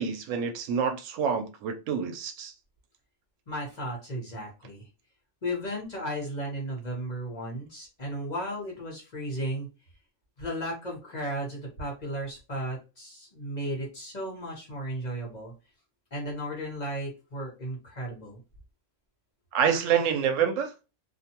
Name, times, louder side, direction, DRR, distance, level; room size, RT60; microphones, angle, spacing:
voice 1, 0.0-2.5 19.5-20.7, right 7 dB, 90° right, 1.0 m, -27 dB
voice 2, 3.5-4.9 5.4-9.7 10.4-15.5 16.1-18.4, equal, 40° left, 0.9 m, -35 dB
2.5 x 2.1 x 2.8 m
omnidirectional pair, 1.3 m